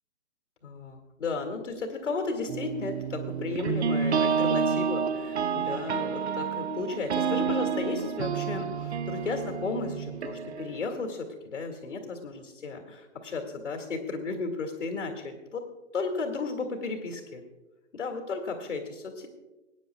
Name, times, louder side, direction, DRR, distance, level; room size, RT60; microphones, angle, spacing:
voice 1, 0.6-15.6 15.9-17.4 17.9-19.3, left 4 dB, 70° left, 3 dB, 2.3 m, -34 dB
sound 1, 2.5-10.9, right 6 dB, 60° right, 0.7 m, -29 dB
22.0 x 9.8 x 2.3 m, 1.1 s
hypercardioid pair, 145°, 37 cm